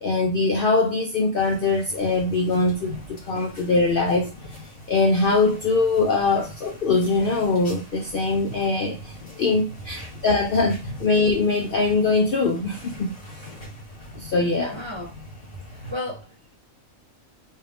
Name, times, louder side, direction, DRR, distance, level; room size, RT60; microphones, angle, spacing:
voice 1, 0.0-4.3 4.9-13.1 14.2-14.8, left 3 dB, 60° left, 0.6 m, -22 dB
sound 1, 1.3-15.9, equal, 80° left, 2.6 m, -42 dB
voice 2, 14.7-15.1 15.6-16.6, left 1 dB, 25° right, 0.7 m, -34 dB
4.4 x 2.4 x 3.4 m
omnidirectional pair, 1.4 m